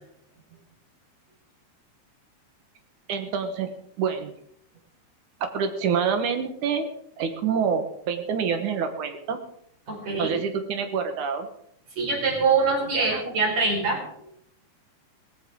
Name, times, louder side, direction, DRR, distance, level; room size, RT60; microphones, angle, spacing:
voice 1, 3.1-3.7 4.0-4.3 5.4-6.9 7.2-9.4 10.2-11.5 12.9-13.2, right 6 dB, 75° right, 7 dB, 2.7 m, -27 dB
voice 2, 9.9-10.4 12.0-14.0, right 4 dB, 55° right, -1 dB, 6.2 m, -24 dB
18.0 x 15.5 x 3.8 m, 0.72 s
omnidirectional pair, 3.6 m